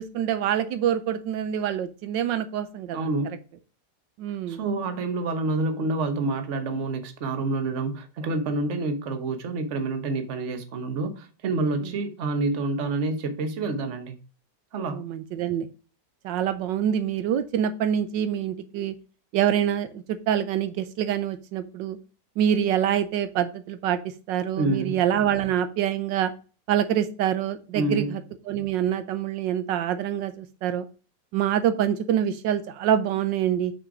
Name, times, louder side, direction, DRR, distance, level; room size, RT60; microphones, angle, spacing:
voice 1, 0.0-3.1 4.2-4.6 14.8-15.7 16.2-18.9 19.3-22.0 22.4-24.0 24.3-26.3 26.7-28.2 28.5-30.9 31.3-33.7, right 10 dB, 80° right, 1.3 m, -25 dB
voice 2, 2.9-3.4 4.5-14.2 14.7-15.0 24.5-25.0 27.7-28.2, right 3 dB, 45° right, 1.2 m, -28 dB
6.0 x 5.1 x 4.8 m
omnidirectional pair, 2.0 m